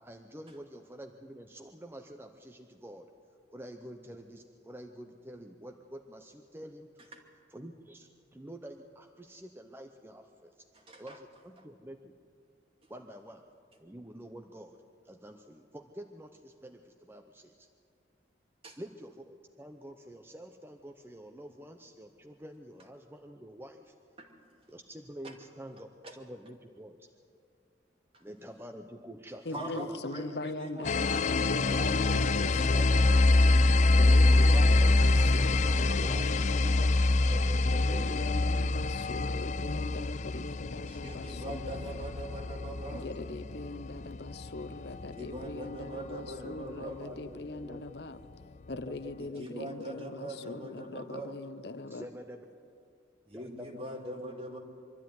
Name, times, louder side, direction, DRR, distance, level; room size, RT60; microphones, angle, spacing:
voice 1, 0.0-3.1 3.5-7.1 7.5-10.7 11.0-12.1 12.9-13.4 13.8-14.8 15.0-17.7 18.8-23.9 24.7-27.1 28.2-30.0 32.0-32.8 34.0-34.6 37.3-38.7 46.4-47.8 48.9-49.6 49.9-50.0 51.9-52.4 53.3-54.6, equal, 10° right, 4 dB, 0.7 m, -48 dB
voice 2, 10.7-11.2 18.6-18.8 24.2-24.3 25.2-25.3 26.0-26.1 29.5-31.3 31.7-33.3 34.1-36.3 40.9-43.1 45.1-47.0 49.4-51.4 53.3-54.6, right 1 dB, 30° right, 2 dB, 2.4 m, -42 dB
voice 3, 29.4-33.3 33.9-37.0 37.6-42.0 42.9-48.2 48.7-52.1, left 2 dB, 65° left, 13 dB, 0.8 m, -41 dB
sound 1, 30.8-46.3, left 2 dB, 40° left, 0.4 m, -26 dB
24.0 x 13.0 x 9.5 m, 2.4 s
head